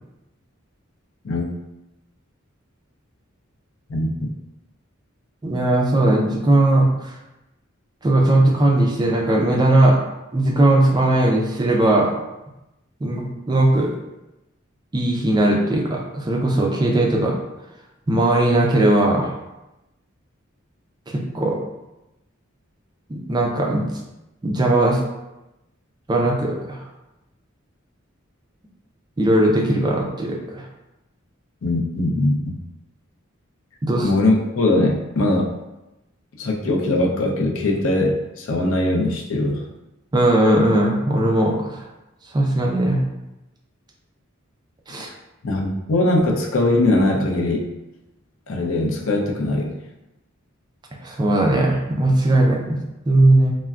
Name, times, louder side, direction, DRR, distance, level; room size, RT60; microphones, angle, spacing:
voice 1, 3.9-4.3 31.6-32.5 34.0-35.5 36.4-39.6 45.4-47.7 48.5-49.8, left 2 dB, 70° left, -1 dB, 0.5 m, -21 dB
voice 2, 5.4-6.9 8.0-10.0 10.3-12.1 13.0-13.9 14.9-17.3 18.1-19.3 21.1-21.6 23.1-23.9 24.4-25.0 26.1-26.8 29.2-30.6 33.8-34.1 40.1-41.8 42.3-43.0 44.9-45.1 51.0-52.8 53.1-53.5, right 1 dB, 20° right, 0 dB, 0.4 m, -18 dB
3.4 x 2.1 x 2.3 m, 0.96 s
head